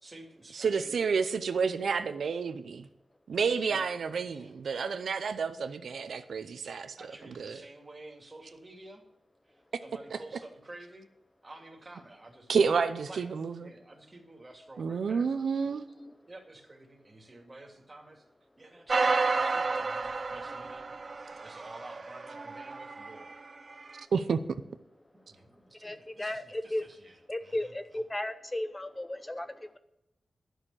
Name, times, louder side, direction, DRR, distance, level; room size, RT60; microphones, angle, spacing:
voice 1, 0.0-1.1 3.6-3.9 4.3-4.5 7.0-9.0 9.5-11.1 11.4-13.3 13.6-15.4 16.3-18.2 18.6-23.4 25.3-28.0, right 2 dB, 25° right, 1 dB, 2.5 m, -51 dB
voice 2, 0.5-2.9 3.3-7.0 7.4-7.6 10.1-10.2 12.5-13.7 14.8-15.9 24.1-24.4, right 5 dB, 90° right, 10 dB, 0.6 m, -30 dB
sound 1, 18.9-23.4 24.0-24.1, right 4 dB, 45° right, 0.7 m, -31 dB
voice 3, 25.8-26.8 27.3-29.8, left 1 dB, 20° left, 10 dB, 0.7 m, -35 dB
11.5 x 6.5 x 8.9 m, 0.86 s
wide cardioid pair, 110°, 0 cm